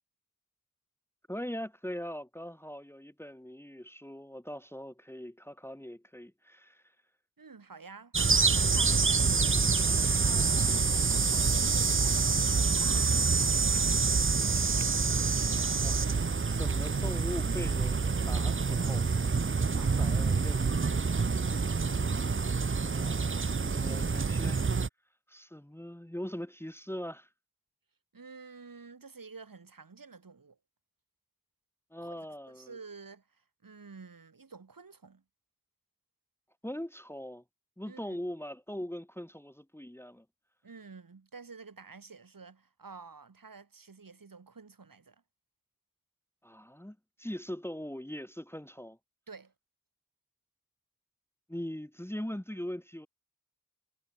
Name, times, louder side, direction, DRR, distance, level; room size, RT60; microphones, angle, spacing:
voice 1, 1.3-6.9 15.8-16.0 16.5-19.1 20.0-20.8 22.8-24.6 25.3-27.3 31.9-32.8 36.6-37.4 37.8-40.3 46.4-49.0 51.5-53.1, equal, 5° left, 2.0 m, -41 dB
voice 2, 7.4-8.1 8.5-14.4 19.7-21.2 28.1-30.6 32.0-35.2 37.9-38.2 40.6-45.2 49.3-49.5, right 4 dB, 80° right, 4.8 m, -50 dB
sound 1, 8.1-24.9, right 4 dB, 40° right, 0.8 m, -27 dB
wide cardioid pair, 80°, 33 cm